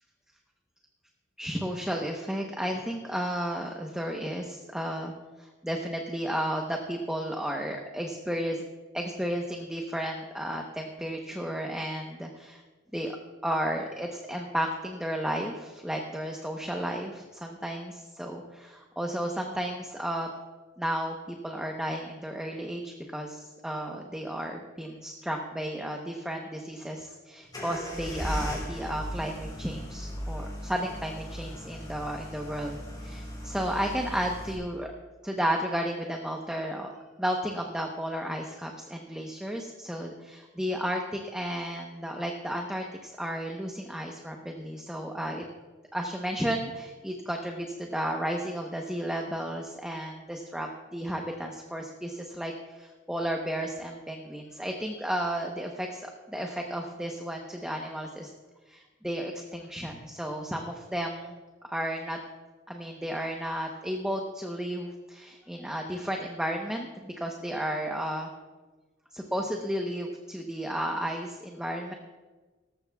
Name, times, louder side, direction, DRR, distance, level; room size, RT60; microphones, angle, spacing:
voice 1, 1.4-5.1 5.4-8.6 8.9-12.6 12.9-13.2 13.4-20.3 20.8-34.9 35.2-36.9 37.2-45.4 45.9-58.3 58.7-61.3 61.7-62.2 62.7-68.3 69.1-71.9, equal, 5° right, 1 dB, 0.9 m, -33 dB
sound 1, 27.5-34.5, equal, 20° left, 3.8 m, -37 dB
18.0 x 14.5 x 2.3 m, 1.3 s
head